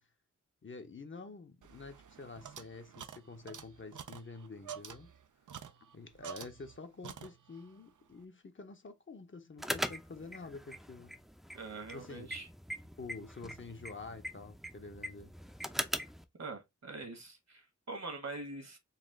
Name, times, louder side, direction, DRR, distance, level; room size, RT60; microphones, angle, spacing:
voice 1, 0.6-5.1 5.8-11.1 11.9-12.4 13.0-15.3 15.6-15.9, left 3 dB, 40° left, 0.7 m, -48 dB
sound 1, 1.6-6.8 7.0-7.7, right 8 dB, 80° right, 0.5 m, -49 dB
sound 2, 9.6-16.2, equal, ahead, 0.5 m, -41 dB
voice 2, 11.5-12.5 16.4-18.8, right 3 dB, 60° right, 1.4 m, -44 dB
4.1 x 2.4 x 3.6 m
wide cardioid pair, 65°, 30 cm